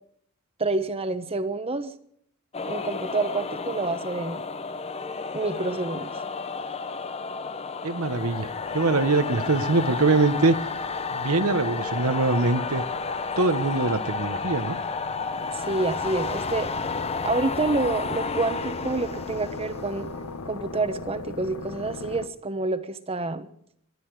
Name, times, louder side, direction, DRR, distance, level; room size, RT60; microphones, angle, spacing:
voice 1, 0.6-1.9 2.7-4.4 5.3-6.1 15.5-16.7 17.2-20.1 20.5-23.5, right 2 dB, 25° right, 10 dB, 1.1 m, -28 dB
sound 1, 2.5-21.1, left 4 dB, 30° left, 0.7 m, -32 dB
voice 2, 7.8-10.6 11.1-12.8 13.4-14.8, right 3 dB, 75° right, 10 dB, 1.2 m, -23 dB
sound 2, 8.0-22.3, left 3 dB, 70° left, 1.1 m, -41 dB
21.0 x 12.5 x 4.8 m, 0.67 s
head